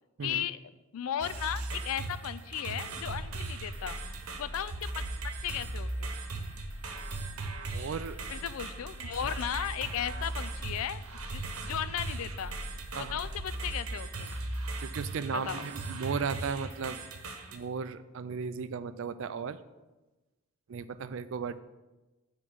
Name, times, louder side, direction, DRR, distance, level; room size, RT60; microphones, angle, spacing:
voice 1, 0.2-0.6 0.9-4.0 4.4-6.2 8.3-11.0 11.3-12.5 12.9-14.3 15.3-15.6, left 9 dB, 70° left, 15 dB, 0.4 m, -36 dB
sound 1, 1.2-17.6, right 2 dB, 75° right, 1.0 m, -38 dB
sound 2, 2.9-13.5, equal, 10° right, 1.3 m, -45 dB
voice 2, 7.7-8.2 12.9-13.2 14.8-17.0 17.5-19.6 20.7-21.6, right 5 dB, 60° right, 13 dB, 0.4 m, -35 dB
8.8 x 3.7 x 6.0 m, 1.1 s
head